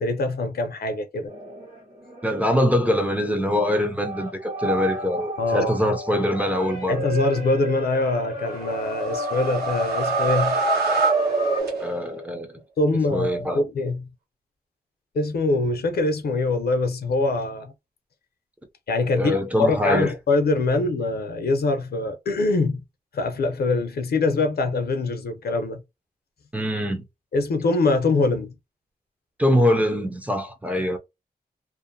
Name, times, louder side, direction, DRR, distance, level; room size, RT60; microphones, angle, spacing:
voice 1, 0.0-1.3 5.4-5.9 6.9-10.6 12.8-14.1 15.1-17.7 18.9-22.8 23.1-25.8 27.3-28.5, left 3 dB, 75° left, 0.6 m, -23 dB
sound 1, 1.3-11.6, right 2 dB, 60° right, 1.2 m, -34 dB
voice 2, 2.2-7.0 11.8-12.5 13.1-13.7 19.1-20.1 26.5-27.0 29.4-31.0, left 1 dB, 10° right, 0.4 m, -23 dB
sound 2, 8.5-12.2, right 3 dB, 90° right, 1.2 m, -24 dB
2.6 x 2.0 x 2.6 m
wide cardioid pair, 175°, 16 cm